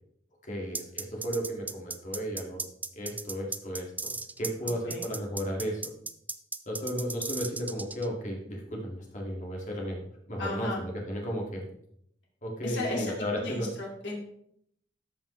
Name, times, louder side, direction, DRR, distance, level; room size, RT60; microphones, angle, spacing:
voice 1, 0.4-2.6 2.9-5.8 6.7-11.6 12.4-13.7, equal, 45° left, -1 dB, 2.1 m, -34 dB
sound 1, 0.7-8.1, right 3 dB, 10° right, 0.3 m, -36 dB
voice 2, 4.6-5.0 10.4-10.8 12.6-13.1 13.4-14.2, left 2 dB, 80° left, -2 dB, 2.5 m, -34 dB
13.0 x 5.4 x 3.2 m, 0.71 s
head